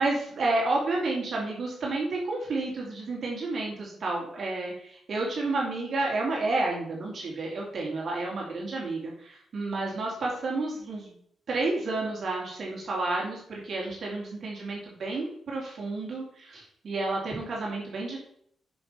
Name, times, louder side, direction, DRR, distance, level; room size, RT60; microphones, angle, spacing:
voice 1, 0.0-9.1 9.5-11.2 11.5-18.2, right 2 dB, 55° right, -2 dB, 2.7 m, -30 dB
6.5 x 6.2 x 5.5 m, 0.67 s
cardioid pair, 85°, 0 cm